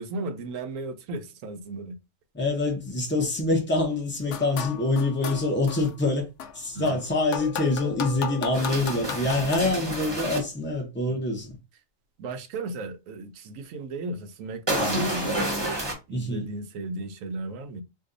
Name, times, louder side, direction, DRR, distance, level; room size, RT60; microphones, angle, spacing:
voice 1, 0.0-2.0 6.7-7.0 11.1-11.2 12.2-15.4 16.1-17.8, right 2 dB, 80° right, 1.0 m, -35 dB
voice 2, 2.3-6.3 6.5-11.5 16.1-16.4, left 2 dB, 15° left, 0.5 m, -25 dB
sound 1, 4.2-5.9 6.4-9.6, left 8 dB, 70° left, 0.8 m, -35 dB
sound 2, 8.5-10.4 14.7-15.9, right 1 dB, 25° right, 0.8 m, -29 dB
2.6 x 2.2 x 3.7 m
omnidirectional pair, 1.4 m